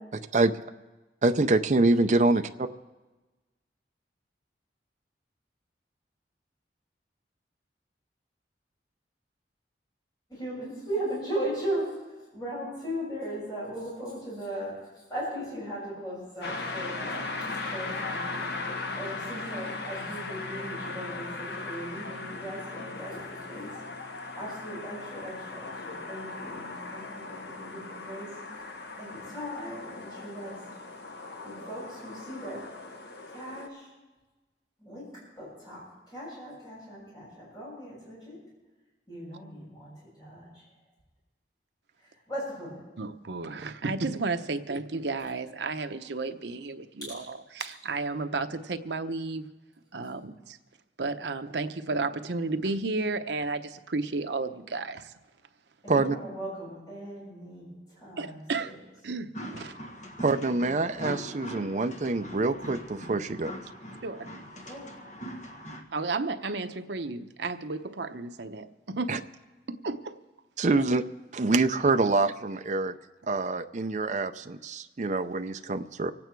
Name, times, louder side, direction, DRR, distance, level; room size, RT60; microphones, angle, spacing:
voice 1, 1.2-2.7 55.9-56.2 60.2-63.5 69.1-69.2 70.6-71.0 71.3-72.9 73.3-76.1, right 3 dB, 45° right, 7 dB, 0.5 m, -25 dB
voice 2, 10.3-11.9 12.3-18.4 18.9-23.2 23.5-23.7 24.3-28.3 29.0-30.5 31.4-32.6 33.3-33.9 34.8-35.0 35.4-35.8 36.1-38.4 39.1-40.5 42.3-42.8 55.8-57.7 58.0-58.8 64.6-64.9, right 1 dB, 25° left, -7 dB, 6.5 m, -37 dB
sound 1, 16.4-33.7, left 3 dB, 70° left, 1.1 m, -38 dB
voice 3, 43.0-49.4 49.9-50.6 51.0-55.1 58.2-58.8 59.0-59.7 64.0-64.3 65.9-69.2 69.7-70.2, right 3 dB, 80° right, 8 dB, 0.8 m, -33 dB
sound 2, 59.3-65.8, equal, 45° left, 1.6 m, -41 dB
25.5 x 8.9 x 4.6 m, 1.2 s
head